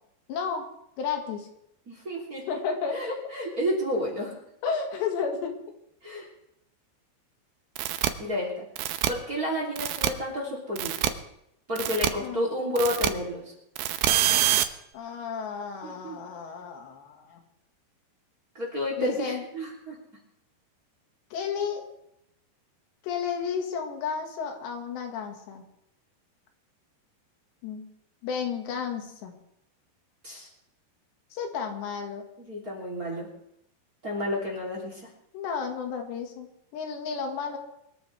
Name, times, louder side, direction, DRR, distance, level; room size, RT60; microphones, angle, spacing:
voice 1, 0.3-0.7 1.0-1.5 2.5-3.1 4.6-5.6 12.2-12.5 14.9-17.4 19.0-19.4 21.3-21.9 23.0-25.6 27.6-27.9 28.2-29.3 31.3-32.2 35.3-37.6, left 6 dB, 85° left, 3 dB, 4.1 m, -32 dB
voice 2, 1.9-2.4 2.9-4.3 6.0-6.3 8.2-8.7 9.1-11.2 11.7-13.4 15.8-16.2 18.5-19.9 30.2-30.5 32.4-33.3 34.0-35.0, left 1 dB, 25° right, -1 dB, 3.1 m, -31 dB
sound 1, 7.8-8.1 8.8-9.1 9.8-10.1 10.8-11.1 11.8-12.1 12.8-13.1 13.8-14.6, right 12 dB, 75° right, 2.2 m, -25 dB
23.5 x 13.5 x 3.4 m, 0.78 s
omnidirectional pair, 4.9 m